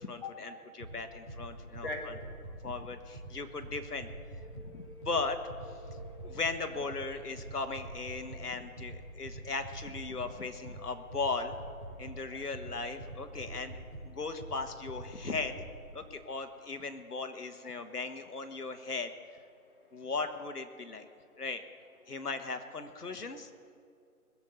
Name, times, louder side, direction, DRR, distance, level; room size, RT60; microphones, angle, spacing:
voice 1, 0.0-2.1 2.6-4.1 4.7-5.4 6.2-11.6 12.0-13.7 14.0-15.6 15.9-19.1 19.9-21.1 21.4-21.6 22.1-23.5, left 4 dB, 80° left, 7 dB, 1.6 m, -37 dB
sound 1, 0.8-15.8, right 1 dB, 30° right, 3.5 m, -46 dB
voice 2, 1.8-2.2 4.3-5.1 5.7-6.4 11.9-12.4 13.3-13.8, left 2 dB, 35° left, 2 dB, 1.8 m, -45 dB
20.5 x 7.4 x 8.0 m, 2.3 s
figure-of-eight pair, 165°, 45 cm